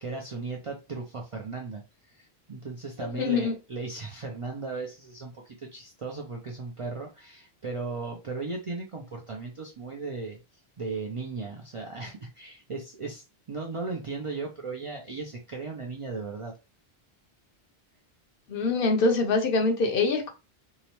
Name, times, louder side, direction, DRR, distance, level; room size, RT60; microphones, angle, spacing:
voice 1, 0.0-10.4 10.8-16.5, right 4 dB, 50° right, 0.4 m, -36 dB
voice 2, 3.1-3.5 18.5-20.3, left 3 dB, 65° left, 0.7 m, -24 dB
2.8 x 2.0 x 2.9 m
omnidirectional pair, 1.1 m